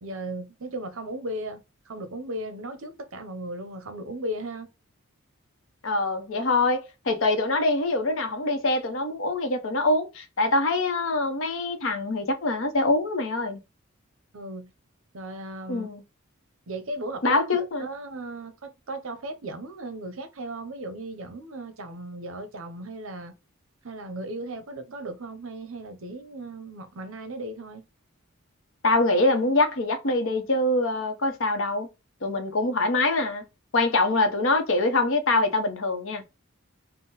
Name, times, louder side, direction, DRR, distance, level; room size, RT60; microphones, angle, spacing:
voice 1, 0.0-4.7 14.3-14.7 15.1-15.9 16.7-23.3 23.8-27.8, right 1 dB, 70° right, 0.7 m, -36 dB
voice 2, 5.8-13.6 15.7-16.0 17.2-17.9 28.8-31.9 32.2-33.5 33.7-36.2, left 2 dB, 65° left, 0.7 m, -24 dB
3.7 x 2.1 x 4.0 m
head